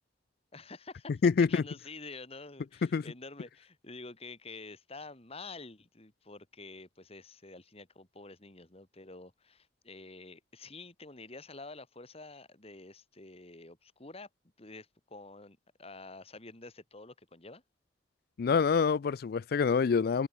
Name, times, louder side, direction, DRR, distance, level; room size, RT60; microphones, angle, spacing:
voice 1, 0.5-14.3 14.6-17.6, left 3 dB, 35° left, 2.3 m, -48 dB
voice 2, 1.2-1.6 2.9-3.0 18.4-20.3, left 5 dB, 55° left, 0.4 m, -26 dB
head